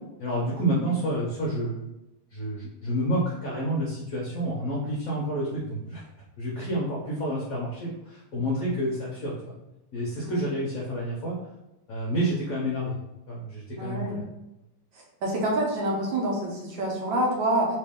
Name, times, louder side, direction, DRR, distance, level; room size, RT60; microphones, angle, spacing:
voice 1, 0.2-1.9 2.3-6.0 6.4-9.5 9.9-11.4 11.9-13.0 13.3-14.2, right 1 dB, 65° left, -5 dB, 0.8 m, -29 dB
voice 2, 13.8-14.2 15.2-17.7, right 1 dB, 70° right, -2 dB, 1.4 m, -27 dB
3.3 x 3.0 x 3.5 m, 0.95 s
omnidirectional pair, 2.4 m